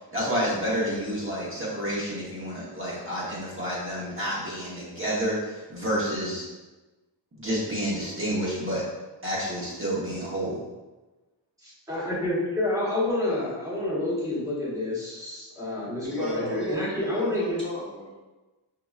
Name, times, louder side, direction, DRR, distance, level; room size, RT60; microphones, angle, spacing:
voice 1, 0.1-6.5 7.4-8.8 9.2-10.6, equal, 25° right, -8 dB, 1.0 m, -29 dB
voice 2, 11.6-17.6, left 1 dB, 5° right, -8 dB, 1.2 m, -29 dB
voice 3, 16.0-18.2, equal, 25° left, -8 dB, 1.0 m, -34 dB
5.9 x 2.8 x 2.4 m, 1.2 s
wide cardioid pair, 170°, 45 cm